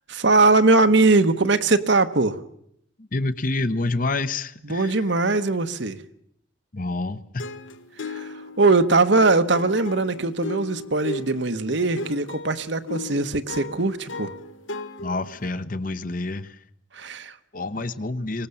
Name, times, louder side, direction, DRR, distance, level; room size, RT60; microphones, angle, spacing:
voice 1, 0.1-2.4 4.7-6.0 8.1-14.3 16.9-17.3, right 3 dB, 65° right, 10 dB, 1.2 m, -21 dB
voice 2, 3.0-5.0 6.7-7.4 15.0-16.6 17.5-18.5, left 2 dB, 40° left, 12 dB, 1.0 m, -28 dB
sound 1, 7.4-15.5, left 3 dB, 75° left, 1.4 m, -36 dB
24.5 x 19.0 x 7.1 m, 0.72 s
head